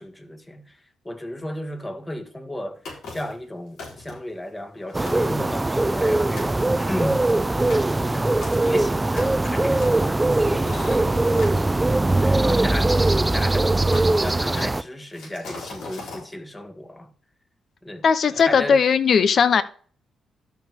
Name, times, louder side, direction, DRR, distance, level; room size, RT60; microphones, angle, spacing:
voice 1, 0.0-2.8 3.1-7.2 8.0-13.8 14.2-17.1 17.8-18.8, left 1 dB, 15° left, 1.6 m, -34 dB
sound 1, 2.9-3.4 3.8-4.3 4.8-4.9 5.1-6.1 6.4-6.6 7.1-11.6 12.5-13.4 13.9-14.7 15.1-16.2, left 3 dB, 75° left, 3.6 m, -39 dB
sound 2, 4.9-14.8, right 2 dB, 20° right, 0.4 m, -21 dB
voice 2, 18.0-19.6, left 6 dB, 60° left, 0.8 m, -18 dB
13.0 x 4.7 x 3.6 m
supercardioid pair, 55°, 0 cm